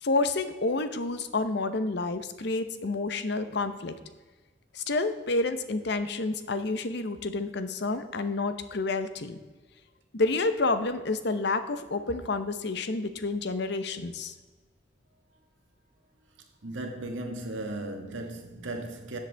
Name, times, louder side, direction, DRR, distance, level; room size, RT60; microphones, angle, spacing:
voice 1, 0.0-3.9 4.7-9.4 10.1-14.3, left 3 dB, 60° left, 0.8 m, -29 dB
voice 2, 16.6-19.2, right 2 dB, 85° right, 1.6 m, -36 dB
13.0 x 7.7 x 3.4 m
head